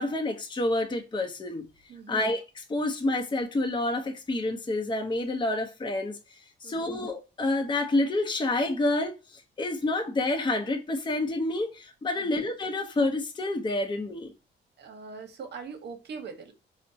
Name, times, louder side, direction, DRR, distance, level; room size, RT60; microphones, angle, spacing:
voice 1, 0.0-1.6 2.1-14.3, left 2 dB, 25° left, 0.7 m, -28 dB
voice 2, 1.9-2.3 6.6-7.0 12.1-12.4 14.8-16.5, right 5 dB, 55° right, 0.8 m, -42 dB
4.3 x 2.1 x 2.7 m
cardioid pair, 90°, 20 cm